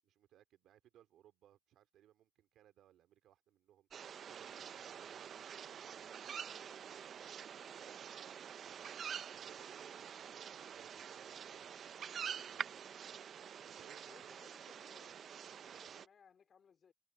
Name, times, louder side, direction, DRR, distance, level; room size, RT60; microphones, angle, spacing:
voice 1, 0.0-6.1 8.7-8.9 9.3-10.0 10.2-12.8 13.6-14.3 15.0-15.2 15.7-15.8, right 12 dB, 80° right, 2.5 m, -66 dB
sound 1, 3.9-16.1, right 8 dB, 60° right, 0.5 m, -47 dB
voice 2, 7.5-8.0 14.1-16.9, left 7 dB, 50° left, 2.6 m, -66 dB
cardioid pair, 90°, 0 cm